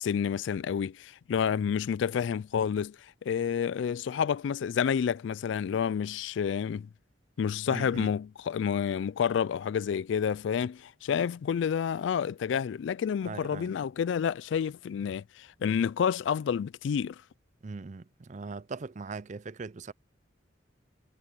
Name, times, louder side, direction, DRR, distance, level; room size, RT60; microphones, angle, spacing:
voice 1, 0.0-3.0 3.3-6.9 7.4-17.2, left 7 dB, 70° left, 0.3 m, -29 dB
voice 2, 7.7-8.1 13.2-13.7 17.6-19.9, right 4 dB, 40° right, 0.5 m, -40 dB
head